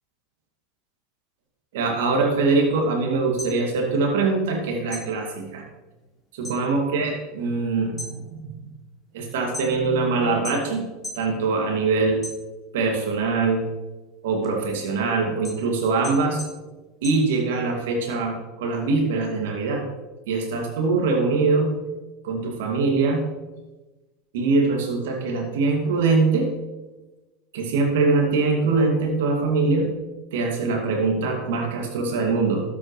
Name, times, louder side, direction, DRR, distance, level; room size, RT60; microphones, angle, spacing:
voice 1, 1.7-5.6 6.3-8.6 9.1-10.8 11.1-12.2 12.7-13.6 14.2-16.4 17.0-19.8 20.3-21.7 22.2-23.2 24.3-26.5 27.5-29.9 30.3-32.6, right 3 dB, 70° right, 1 dB, 2.4 m, -23 dB
sound 1, 3.2-4.6 4.9-6.6 7.0-7.4 7.8-10.0 10.4-11.3 11.7-12.9 13.3-17.8, left 2 dB, 15° left, 3.2 m, -39 dB
12.5 x 8.4 x 3.2 m, 1.1 s
hypercardioid pair, 85°, 0 cm